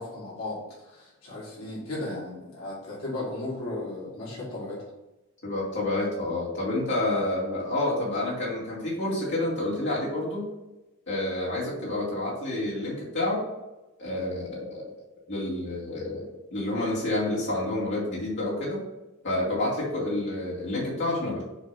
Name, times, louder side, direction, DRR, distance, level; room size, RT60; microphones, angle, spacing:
voice 1, 0.0-4.8, left 2 dB, 75° left, -6 dB, 2.0 m, -35 dB
voice 2, 5.4-10.5 11.1-13.4 14.0-14.9 15.3-18.8 19.2-21.4, left 1 dB, 55° left, -6 dB, 2.2 m, -29 dB
7.0 x 2.8 x 5.7 m, 1.0 s
head